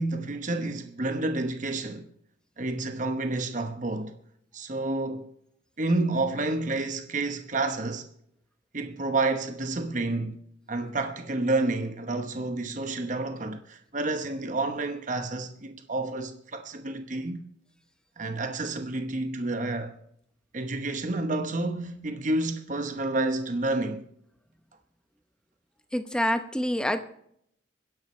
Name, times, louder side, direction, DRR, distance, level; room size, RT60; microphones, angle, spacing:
voice 1, 0.0-2.1 2.6-4.2 4.5-5.3 5.8-8.1 8.7-10.4 10.7-17.4 18.2-19.9 20.5-24.1, right 2 dB, 40° right, 1.0 m, -29 dB
voice 2, 25.9-27.0, equal, 5° left, 0.8 m, -26 dB
25.0 x 11.0 x 3.2 m
head